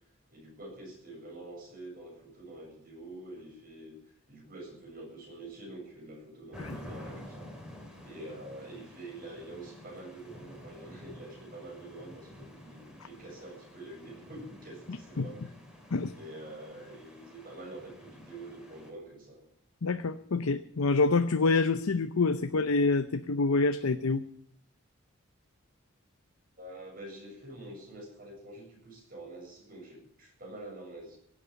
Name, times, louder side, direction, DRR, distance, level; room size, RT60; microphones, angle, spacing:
voice 1, 0.3-4.0 4.3-7.5 8.0-15.5 16.1-19.5 26.6-31.2, right 1 dB, 40° right, -1 dB, 7.5 m, -46 dB
sound 1, 6.5-18.9, left 1 dB, 5° right, 2.8 m, -50 dB
voice 2, 19.8-24.2, left 3 dB, 80° left, 9 dB, 0.7 m, -27 dB
17.5 x 8.6 x 8.6 m, 0.66 s
head